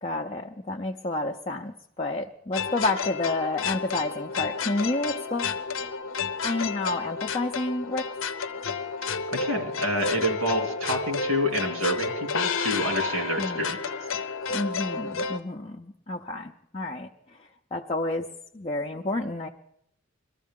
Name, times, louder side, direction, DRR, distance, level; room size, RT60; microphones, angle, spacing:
voice 1, 0.0-5.6 6.4-8.1 13.4-13.8 14.5-17.1 17.4-18.3 18.5-19.5, left 2 dB, 30° left, 1 dB, 0.5 m, -30 dB
sound 1, 2.5-15.4, left 5 dB, 70° left, 0.6 m, -31 dB
voice 2, 9.3-13.8, equal, 80° right, 3 dB, 2.6 m, -28 dB
22.0 x 13.5 x 3.7 m, 0.73 s
head